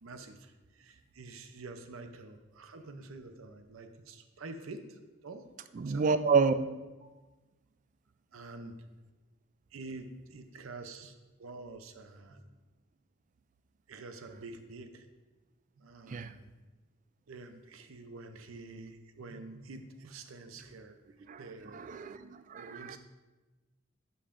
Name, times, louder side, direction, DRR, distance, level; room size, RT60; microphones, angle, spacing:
voice 1, 0.0-5.5 5.8-6.2 8.3-8.8 9.7-12.5 13.9-15.1 15.8-16.5 17.3-21.0 21.4-21.9 22.6-23.0, right 3 dB, 90° right, 7 dB, 0.6 m, -47 dB
voice 2, 5.8-6.5 16.1-16.3 21.3-21.4 21.7-23.0, right 5 dB, 40° right, 12 dB, 0.3 m, -29 dB
11.0 x 5.4 x 2.5 m, 1.2 s
head